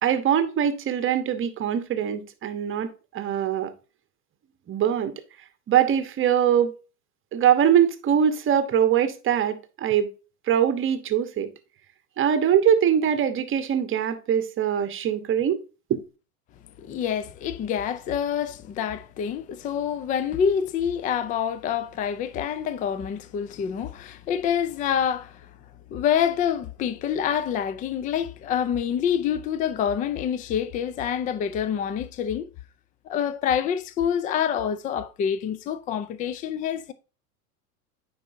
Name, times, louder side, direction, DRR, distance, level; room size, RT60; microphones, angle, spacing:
voice 1, 0.0-3.7 4.7-5.1 5.7-6.7 7.3-10.1 10.5-11.5 12.2-15.6 15.9-16.0, right 9 dB, 25° right, 1.0 m, -22 dB
voice 2, 16.8-25.4 25.9-32.5 33.1-36.9, left 8 dB, 20° left, 0.4 m, -27 dB
9.2 x 4.5 x 2.7 m
hypercardioid pair, 95°, 47 cm